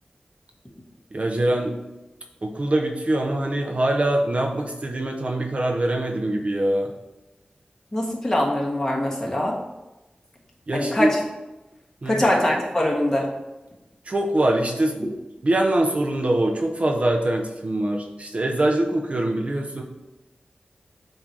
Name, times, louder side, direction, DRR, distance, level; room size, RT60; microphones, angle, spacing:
voice 1, 1.1-1.8 2.4-6.9 10.7-11.1 12.0-12.2 14.1-15.1 15.4-19.8, right 1 dB, 45° right, 2 dB, 0.7 m, -23 dB
voice 2, 7.9-9.6 10.7-11.2 12.0-13.3, left 1 dB, 20° left, -2 dB, 1.4 m, -23 dB
7.3 x 2.7 x 4.7 m, 1.0 s
wide cardioid pair, 85°, 3 cm